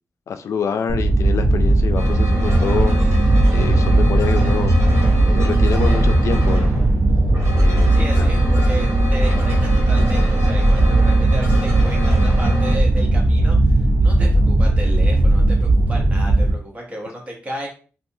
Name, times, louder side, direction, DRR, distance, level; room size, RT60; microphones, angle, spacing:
voice 1, 0.3-4.8 5.3-6.7 7.6-8.3, left 6 dB, 85° left, 0.3 m, -26 dB
sound 1, 0.9-16.5, right 2 dB, 45° right, 0.5 m, -16 dB
sound 2, 2.0-12.8, right 1 dB, 80° right, 1.2 m, -28 dB
voice 2, 7.9-17.7, right 1 dB, 25° right, 1.0 m, -33 dB
3.2 x 2.6 x 2.7 m
wide cardioid pair, 135°, 5 cm